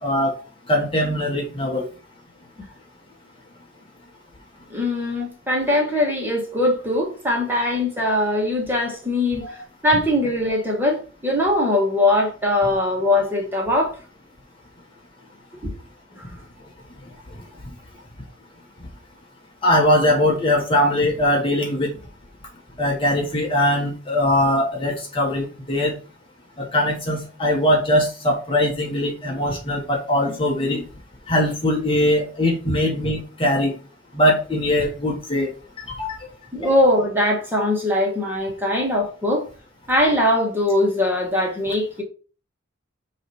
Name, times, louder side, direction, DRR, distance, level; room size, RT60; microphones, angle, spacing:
voice 1, 0.0-0.3 0.7-1.9 9.4-9.6 19.6-21.9 22.8-25.9 26.6-30.8 31.3-33.8 34.1-35.5 36.0-36.2 36.6-36.7, left 1 dB, 25° left, 1.4 m, -21 dB
voice 2, 4.7-9.6 9.8-14.0 15.6-15.7 16.2-16.3 30.3-30.5 36.5-39.5 39.9-42.0, left 1 dB, 10° right, 2.1 m, -21 dB
8.8 x 3.3 x 4.5 m
head